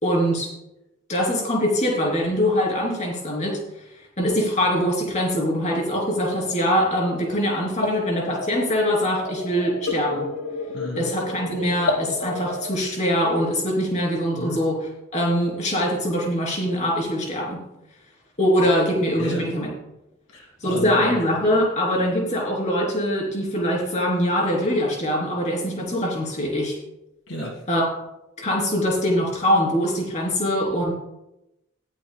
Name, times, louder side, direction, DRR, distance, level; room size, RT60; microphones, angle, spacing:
voice 1, 0.0-0.5 1.1-3.6 4.2-10.3 11.0-17.6 18.4-19.7 20.6-26.8 27.7-27.9 28.4-30.9, equal, 35° left, -2 dB, 3.3 m, -23 dB
sound 1, 6.1-12.8, left 3 dB, 60° left, 1.1 m, -32 dB
voice 2, 10.7-11.1 14.3-14.6 19.2-19.4 20.3-21.1 27.3-27.6, equal, 75° left, 1 dB, 2.0 m, -32 dB
18.5 x 8.7 x 2.3 m, 0.90 s
head